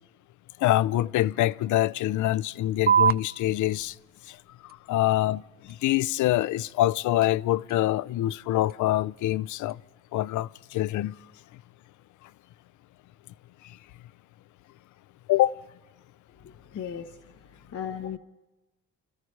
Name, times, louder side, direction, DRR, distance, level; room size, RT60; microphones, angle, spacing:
voice 1, 0.6-4.0 4.3-4.4 4.6-9.8 10.1-11.1 15.3-15.5, left 15 dB, 75° left, 0.5 m, -25 dB
sound 1, 2.9-9.9, right 8 dB, 30° right, 0.5 m, -31 dB
voice 2, 16.4-18.2, left 8 dB, 55° left, 1.2 m, -37 dB
28.0 x 14.0 x 3.3 m
cardioid pair, 90°, 30 cm